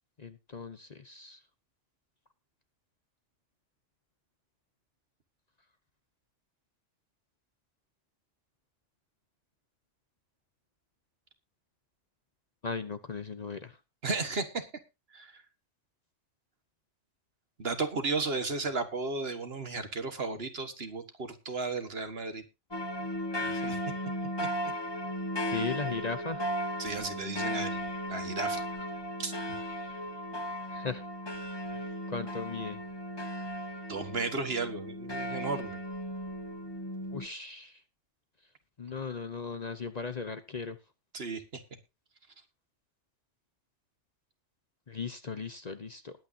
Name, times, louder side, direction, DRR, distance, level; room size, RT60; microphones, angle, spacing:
voice 1, 0.2-1.4 12.6-13.8 25.5-26.5 30.7-31.0 31.7-31.8 32.1-32.8 37.1-37.8 38.8-40.8 44.9-46.1, left 4 dB, 40° left, 11 dB, 0.9 m, -37 dB
voice 2, 14.0-14.7 15.1-15.3 17.6-22.4 23.4-23.8 24.7-24.8 26.8-27.8 28.1-28.6 29.2-29.3 33.9-35.8 41.1-41.6, right 3 dB, 55° right, 9 dB, 1.8 m, -34 dB
sound 1, 22.7-37.3, equal, 20° left, 1.4 m, -36 dB
20.0 x 8.8 x 2.7 m, 0.25 s
omnidirectional pair, 1.2 m